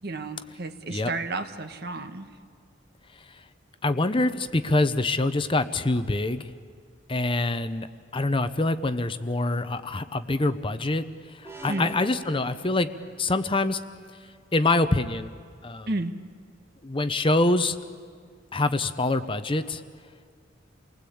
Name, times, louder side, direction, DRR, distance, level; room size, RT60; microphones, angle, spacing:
voice 1, 0.0-2.3 11.7-11.9 15.9-16.1, right 2 dB, 55° right, 8 dB, 1.4 m, -32 dB
voice 2, 3.8-6.5 7.1-7.9 8.1-11.1 11.6-12.9 13.2-13.8 14.5-15.3 15.6-15.9 16.8-17.8 18.5-19.8, left 2 dB, 25° left, 10 dB, 0.8 m, -25 dB
sound 1, 11.4-13.4, right 1 dB, 15° right, 1.3 m, -43 dB
29.0 x 20.0 x 8.6 m, 2.1 s
head